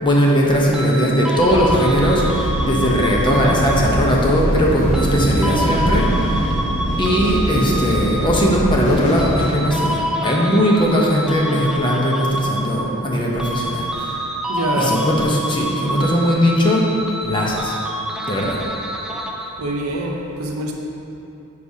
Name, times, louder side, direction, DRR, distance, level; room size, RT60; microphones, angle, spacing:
voice 1, 0.0-6.1 7.0-14.2 14.7-16.9 17.2-17.8 18.3-18.6, equal, 20° left, -3 dB, 0.8 m, -18 dB
sound 1, 0.7-4.1 4.9-8.7 9.2-13.1 13.4-19.7, right 1 dB, 5° right, 0.4 m, -27 dB
sound 2, 1.4-9.5, equal, 60° left, 1.3 m, -23 dB
voice 2, 14.5-15.0 19.6-20.7, right 1 dB, 85° right, 1 dB, 0.8 m, -24 dB
9.5 x 4.9 x 2.8 m, 2.8 s
head